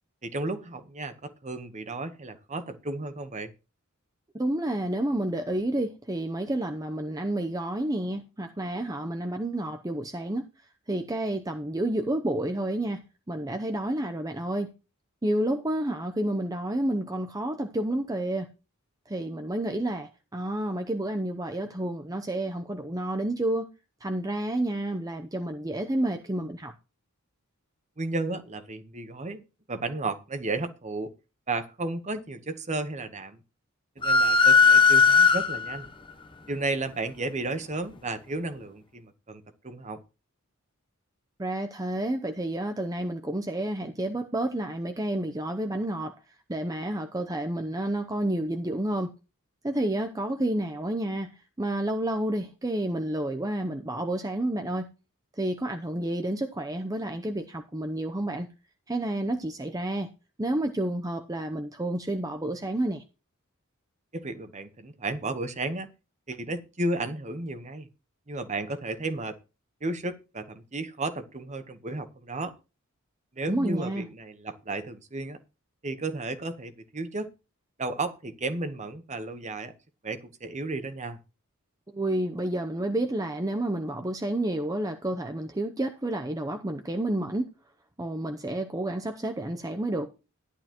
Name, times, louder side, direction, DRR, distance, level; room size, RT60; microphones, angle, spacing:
voice 1, 0.2-3.5 28.0-29.4 29.7-31.1 31.5-33.4 34.0-35.9 36.5-40.0 64.1-65.9 66.3-67.9 68.3-69.4 69.8-72.5 73.4-75.4 75.8-77.3 77.8-79.7 80.0-81.2, right 2 dB, 35° right, 1.1 m, -33 dB
voice 2, 4.3-10.5 10.9-14.7 15.2-18.5 19.1-23.7 24.0-26.7 41.4-46.1 46.5-49.1 49.6-54.9 55.4-58.5 58.9-60.1 60.4-63.0 73.5-74.1 81.9-87.5 88.0-90.1, right 1 dB, 15° right, 0.7 m, -30 dB
sound 1, 34.0-35.8, left 5 dB, 25° left, 0.8 m, -18 dB
13.0 x 11.0 x 3.0 m
head